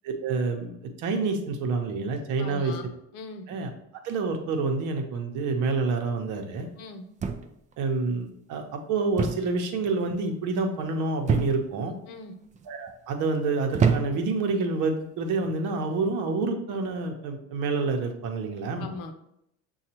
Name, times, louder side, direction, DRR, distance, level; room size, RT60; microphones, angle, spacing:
voice 1, 0.0-2.7 3.5-3.7 4.0-6.7 7.8-11.9 12.7-18.9, right 3 dB, 65° right, 4 dB, 0.9 m, -28 dB
voice 2, 2.4-3.5 6.8-7.1 12.1-12.4 18.8-19.1, left 3 dB, 70° left, 5 dB, 0.8 m, -40 dB
sound 1, 7.2-7.7 9.2-9.6 9.8-10.3 11.3-11.8 12.5-12.9 13.7-14.4 15.3-15.6, right 6 dB, 25° right, 0.4 m, -26 dB
6.4 x 2.4 x 2.9 m, 0.76 s
cardioid pair, 115°, 33 cm